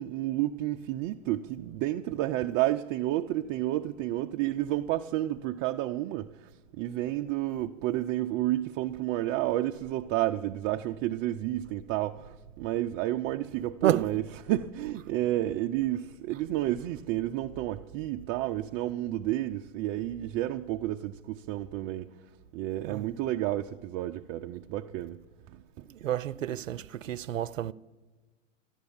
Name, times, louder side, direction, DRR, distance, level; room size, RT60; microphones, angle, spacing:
voice 1, 0.0-25.2 25.5-25.9, right 14 dB, 35° right, 0.5 m, -31 dB
voice 2, 25.9-27.7, right 12 dB, 90° right, 0.6 m, -30 dB
14.0 x 11.0 x 7.1 m
hypercardioid pair, 110°, 38 cm